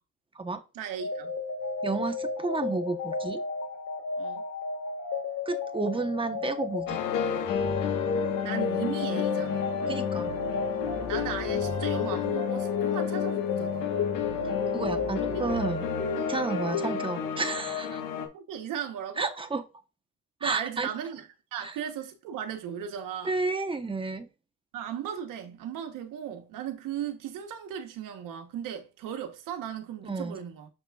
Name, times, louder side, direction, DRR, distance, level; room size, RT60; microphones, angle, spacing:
voice 1, 0.7-1.3 4.2-4.4 8.4-9.7 11.1-13.9 15.3-15.5 16.5-16.7 18.3-19.3 20.4-23.3 24.7-30.7, right 9 dB, 80° right, 1.1 m, -36 dB
sound 1, 1.0-17.6, left 4 dB, 60° left, 1.7 m, -32 dB
voice 2, 1.8-3.4 5.5-7.0 9.9-10.3 14.7-15.9 16.3-18.0 19.2-19.6 20.4-20.9 21.6-21.7 23.2-24.3 30.0-30.4, right 3 dB, 15° right, 1.0 m, -31 dB
sound 2, 6.9-18.3, left 8 dB, 85° left, 1.4 m, -32 dB
6.8 x 5.9 x 2.4 m
cardioid pair, 105°, 32 cm